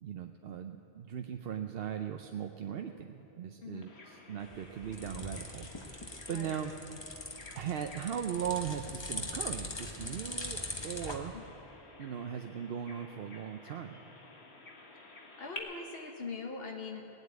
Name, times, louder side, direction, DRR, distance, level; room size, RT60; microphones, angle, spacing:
voice 1, 0.0-6.7 7.5-11.3 12.0-14.0, right 9 dB, 65° right, 5 dB, 0.8 m, -39 dB
Bird vocalization bird call bird song, 3.8-15.6, left 2 dB, 85° left, 1.7 m, -53 dB
sound 1, 4.4-11.2, left 2 dB, 25° left, 1.1 m, -42 dB
voice 2, 6.3-6.6 11.3-11.4 15.4-17.1, left 4 dB, 65° left, 2 dB, 1.3 m, -42 dB
18.0 x 8.1 x 9.4 m, 3.0 s
omnidirectional pair, 1.1 m